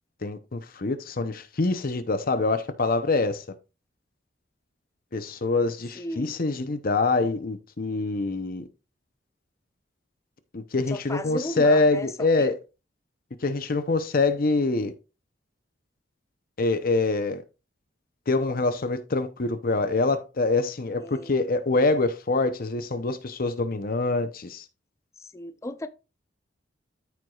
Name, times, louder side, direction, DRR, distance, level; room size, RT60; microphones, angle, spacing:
voice 1, 0.2-3.4 5.1-8.7 10.5-12.5 13.4-14.9 16.6-17.4 18.3-24.6, left 3 dB, 50° left, 0.7 m, -25 dB
voice 2, 6.0-6.4 10.9-12.5 21.0-21.3 25.2-25.9, left 1 dB, 15° left, 0.5 m, -36 dB
14.0 x 4.6 x 2.4 m
head